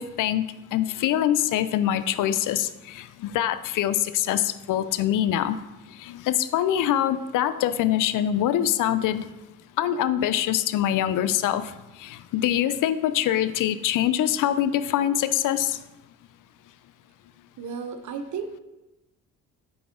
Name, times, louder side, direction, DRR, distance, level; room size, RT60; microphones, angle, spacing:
voice 1, 0.0-5.6 5.9-9.3 9.8-11.7 12.0-15.8, left 11 dB, 65° left, 13 dB, 0.5 m, -24 dB
voice 2, 17.6-18.6, right 6 dB, 60° right, 9 dB, 0.8 m, -34 dB
6.0 x 4.6 x 3.7 m, 1.0 s
supercardioid pair, 60°, 33 cm